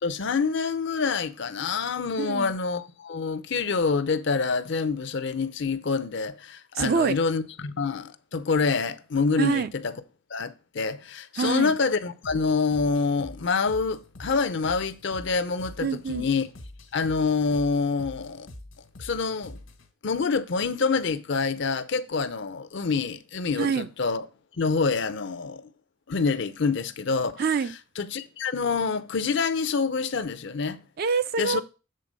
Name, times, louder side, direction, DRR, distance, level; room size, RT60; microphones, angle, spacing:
voice 1, 0.0-9.9 10.3-16.5 16.9-18.5 19.0-19.6 20.0-24.3 24.6-25.7 26.1-27.4 28.0-30.8 31.4-31.6, left 4 dB, 60° left, 0.5 m, -26 dB
voice 2, 2.2-2.5 6.7-7.2 9.4-9.7 11.4-11.7 15.8-16.3 23.6-23.9 27.4-27.8 31.0-31.6, right 5 dB, 45° right, 0.3 m, -25 dB
sound 1, 12.2-19.9, left 1 dB, 80° left, 1.3 m, -45 dB
7.6 x 3.8 x 5.1 m
head